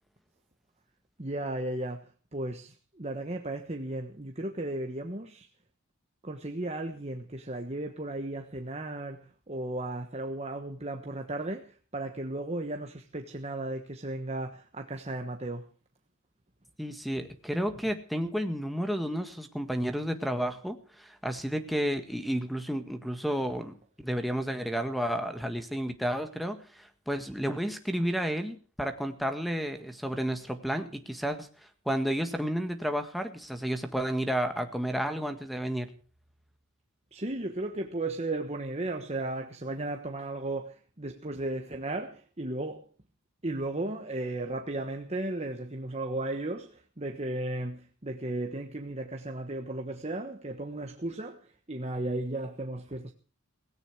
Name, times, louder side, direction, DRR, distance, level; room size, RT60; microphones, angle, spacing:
voice 1, 1.2-2.0 2.3-5.5 6.2-15.7 37.1-42.8 43.4-53.1, right 2 dB, 30° right, 1.3 m, -35 dB
voice 2, 16.8-31.5 31.9-35.9, equal, ahead, 1.7 m, -31 dB
17.5 x 16.5 x 4.7 m
head